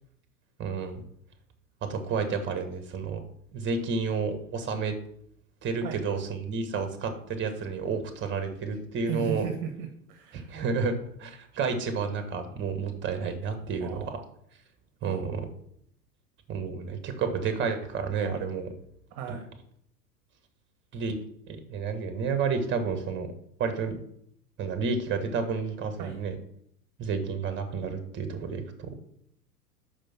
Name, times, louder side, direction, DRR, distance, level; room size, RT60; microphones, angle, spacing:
voice 1, 0.6-1.0 1.9-3.2 3.5-5.0 5.6-9.5 10.3-14.2 15.0-15.4 16.5-18.7 19.3-19.4 20.9-21.2 21.5-23.3 23.6-24.0 24.6-26.3 27.0-29.0, right 5 dB, 25° right, 8 dB, 1.3 m, -30 dB
voice 2, 9.1-10.6 13.8-14.2 19.1-19.4 26.0-26.2, right 7 dB, 40° right, 5 dB, 1.1 m, -36 dB
5.2 x 5.2 x 5.8 m, 0.69 s
hypercardioid pair, 95°, 48 cm